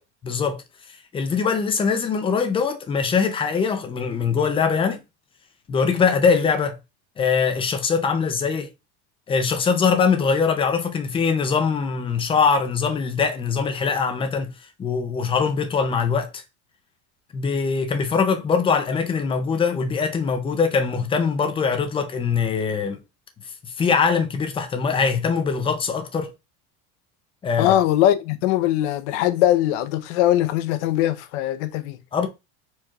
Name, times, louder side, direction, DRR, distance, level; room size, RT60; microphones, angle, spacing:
voice 1, 0.2-0.6 1.1-5.0 5.7-6.8 7.2-8.7 9.3-14.5 14.8-16.4 17.3-23.0 23.6-26.3 27.4-27.7 32.1-32.3, left 5 dB, 15° left, 0.5 m, -22 dB
voice 2, 27.6-32.0, left 13 dB, 75° left, 0.8 m, -21 dB
4.5 x 4.4 x 2.3 m
cardioid pair, 170°, 35 cm